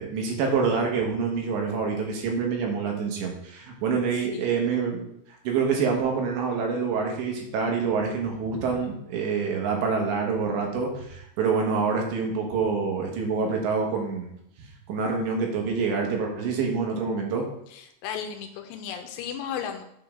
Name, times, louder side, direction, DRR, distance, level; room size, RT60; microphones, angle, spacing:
voice 1, 0.0-5.1 5.5-14.3 14.6-17.4, right 5 dB, 80° right, 1 dB, 3.5 m, -26 dB
voice 2, 17.7-19.8, left 8 dB, 85° left, 5 dB, 2.7 m, -35 dB
8.4 x 5.5 x 3.6 m, 0.76 s
omnidirectional pair, 5.2 m